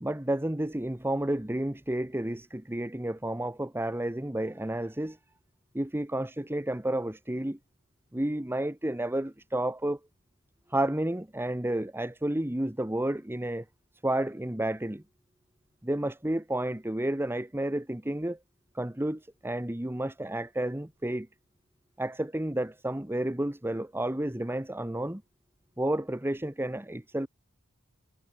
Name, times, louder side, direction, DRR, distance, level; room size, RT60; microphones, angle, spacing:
voice 1, 0.0-5.2 5.7-7.6 8.1-10.0 10.7-13.6 14.0-15.0 15.8-18.4 18.7-21.3 22.0-25.2 25.8-27.3, right 1 dB, 10° right, 1.1 m, -31 dB
head